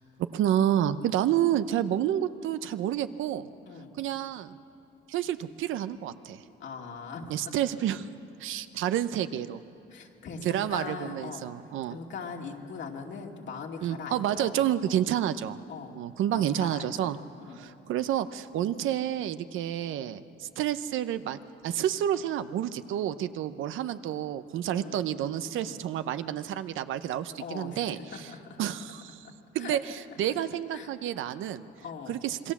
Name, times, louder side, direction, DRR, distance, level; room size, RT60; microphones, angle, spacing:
voice 1, 0.3-3.5 4.0-4.6 5.1-6.4 7.3-8.1 8.4-9.6 10.4-12.0 13.8-15.6 15.9-17.2 17.6-21.4 21.6-28.3 28.6-29.3 29.5-31.6 32.1-32.5, right 11 dB, 85° right, 12 dB, 0.8 m, -29 dB
voice 2, 6.6-7.5 9.9-11.5 11.9-14.6 14.8-15.1 15.7-16.0 16.3-17.1 17.4-17.6 24.7-25.0 25.5-25.8 27.4-28.6 29.6-29.8 30.7-30.9 31.8-32.2, left 5 dB, 65° left, 1 dB, 2.6 m, -41 dB
27.0 x 21.0 x 7.3 m, 2.8 s
cardioid pair, 90°, 20 cm